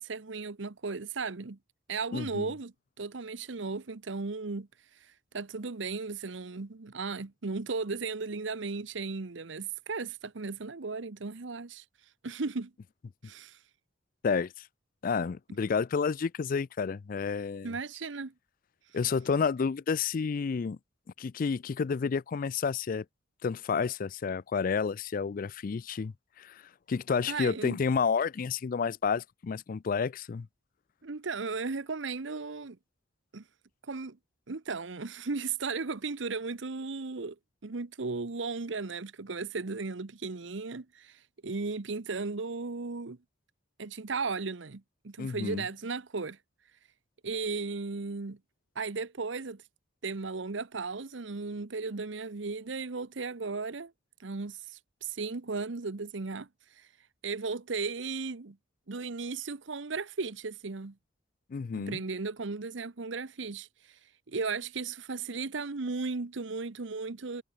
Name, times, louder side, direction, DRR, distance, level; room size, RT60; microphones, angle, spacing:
voice 1, 0.0-1.6 1.9-4.7 5.0-11.8 12.2-12.7 13.2-13.6 17.6-18.3 27.3-27.8 31.0-32.8 33.3-33.4 33.8-34.2 34.5-37.4 37.6-43.2 43.8-46.4 47.2-48.4 48.7-49.6 50.0-53.9 54.2-56.5 56.7-56.9 57.2-58.6 58.9-60.9 61.8-64.0 64.3-67.4, right 4 dB, 75° right, 0.9 m, -36 dB
voice 2, 2.1-2.5 14.2-14.5 15.0-17.7 18.9-20.8 21.2-23.0 23.4-26.6 26.9-30.5 45.2-45.6 61.5-62.0, left 5 dB, 45° left, 0.4 m, -30 dB
head